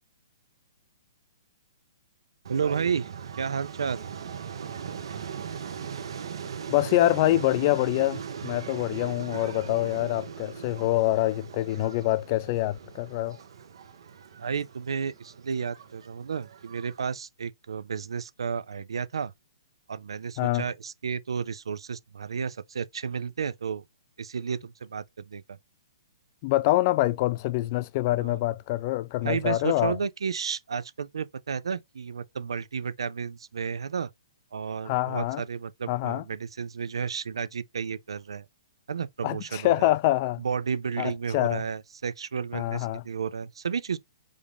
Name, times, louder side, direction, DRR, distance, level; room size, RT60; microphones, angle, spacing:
sound 1, 2.4-17.1, right 7 dB, 70° right, 1.0 m, -39 dB
voice 1, 2.5-3.1 3.4-4.0 14.4-19.3 19.9-23.8 24.2-25.6 28.2-28.4 29.2-34.1 34.5-38.5 38.9-39.9 40.4-44.0, right 6 dB, 90° right, 0.4 m, -32 dB
voice 2, 6.7-13.4 20.4-20.7 26.4-30.0 34.9-35.4 35.9-36.2 39.2-40.4 41.0-41.6 42.5-43.0, left 16 dB, 35° left, 0.3 m, -25 dB
4.9 x 2.5 x 3.4 m
hypercardioid pair, 145°, 3 cm